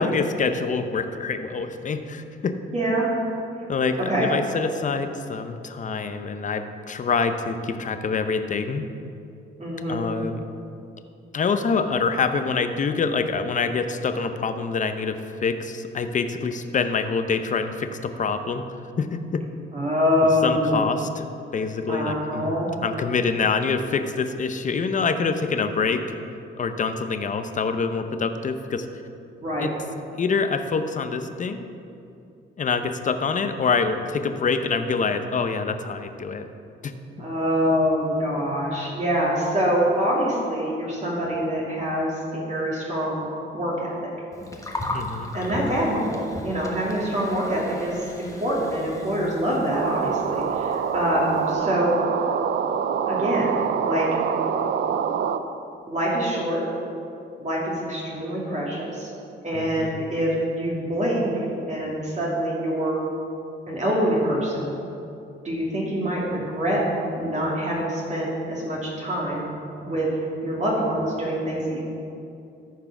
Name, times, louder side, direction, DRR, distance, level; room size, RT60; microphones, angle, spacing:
voice 1, 0.0-2.6 3.7-8.9 9.9-10.4 11.3-18.7 19.0-19.5 20.4-21.2 21.5-22.6 22.8-26.2 26.6-28.9 29.6-29.8 30.2-31.7 32.6-36.5 36.8-36.9 44.9-45.3 59.5-60.1, left 5 dB, 40° left, 8 dB, 0.7 m, -26 dB
voice 2, 2.7-3.1 4.1-4.3 9.6-10.0 19.7-20.9 21.9-22.7 29.4-29.7 37.2-44.1 45.3-52.0 53.0-54.1 55.9-56.6 57.4-59.1 59.4-63.0 63.7-64.7 65.4-66.8 67.2-69.5 69.8-70.1 70.4-71.8, equal, 35° right, -5 dB, 2.6 m, -25 dB
Gurgling, 44.3-51.5, left 1 dB, 15° left, 1.2 m, -37 dB
sound 1, 49.7-55.4, right 7 dB, 60° right, 0.5 m, -25 dB
13.5 x 4.7 x 6.0 m, 2.6 s
cardioid pair, 90°, 20 cm